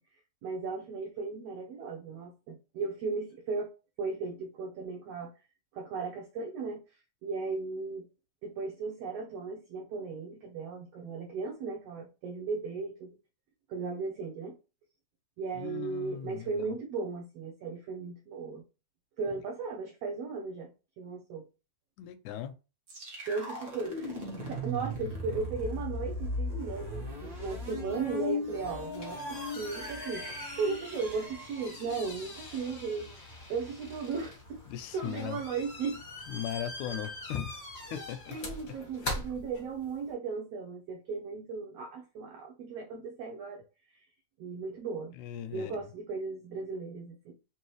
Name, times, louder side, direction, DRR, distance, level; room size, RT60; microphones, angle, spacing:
voice 1, 0.4-3.7 4.0-5.3 5.7-6.8 7.2-8.1 8.4-13.1 13.7-14.5 15.4-18.6 19.2-20.7 21.0-21.5 23.3-24.2 24.5-34.6 34.9-36.0 36.9-37.0 37.9-38.0 38.3-43.6 44.4-45.1 45.5-47.3, right 4 dB, 80° right, 1.4 m, -36 dB
voice 2, 15.6-16.5 22.0-22.5 34.7-35.4 36.3-37.6 37.9-38.4 38.7-38.8 39.0-39.1 45.2-45.7, left 11 dB, 80° left, 1.9 m, -38 dB
sound 1, 22.9-32.7, left 1 dB, 60° right, 0.9 m, -38 dB
sound 2, 28.7-40.1, left 1 dB, 50° left, 0.7 m, -43 dB
4.6 x 2.9 x 3.0 m
omnidirectional pair, 3.5 m